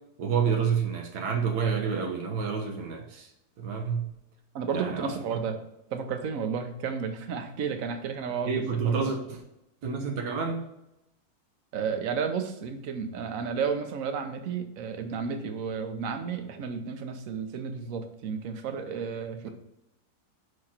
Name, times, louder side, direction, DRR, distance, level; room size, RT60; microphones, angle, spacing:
voice 1, 0.2-3.3 3.6-4.1 4.7-5.4 8.5-9.4 9.8-10.7, right 6 dB, 85° right, 3 dB, 1.4 m, -29 dB
voice 2, 4.5-5.5 5.9-9.1 11.7-19.5, right 6 dB, 60° right, 7 dB, 1.1 m, -32 dB
5.7 x 4.9 x 4.3 m, 0.85 s
omnidirectional pair, 1.7 m